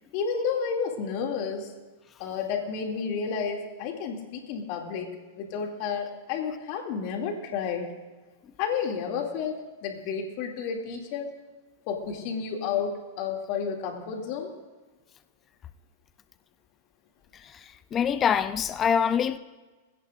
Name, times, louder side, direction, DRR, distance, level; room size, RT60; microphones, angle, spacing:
voice 1, 0.1-1.7 2.2-7.9 8.6-11.3 11.9-14.5 18.0-18.1, left 6 dB, 50° left, 2.5 m, -31 dB
voice 2, 17.9-19.4, left 8 dB, 25° left, 0.5 m, -24 dB
20.5 x 16.5 x 2.5 m
supercardioid pair, 140°, 0 cm